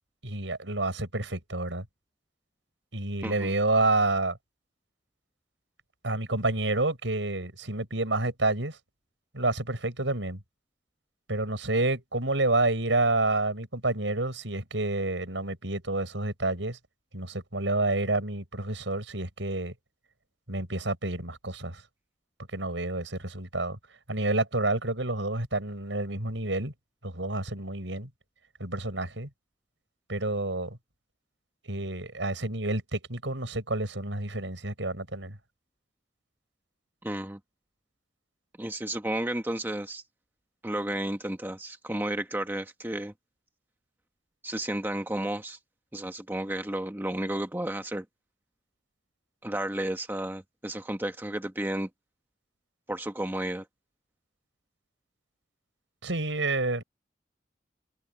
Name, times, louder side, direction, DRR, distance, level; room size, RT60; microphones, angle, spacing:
voice 1, 0.2-1.8 2.9-4.4 6.0-8.8 9.3-10.4 11.3-16.8 17.1-19.7 20.5-21.8 22.5-23.8 24.1-26.7 27.0-28.1 28.6-29.3 30.1-30.8 31.7-35.4 56.0-56.8, right 2 dB, 85° right, 6.0 m, -29 dB
voice 2, 3.2-3.5 37.0-37.4 38.6-40.0 40.6-43.1 44.4-45.6 45.9-48.0 49.4-51.9 52.9-53.6, right 1 dB, 10° right, 1.1 m, -32 dB
head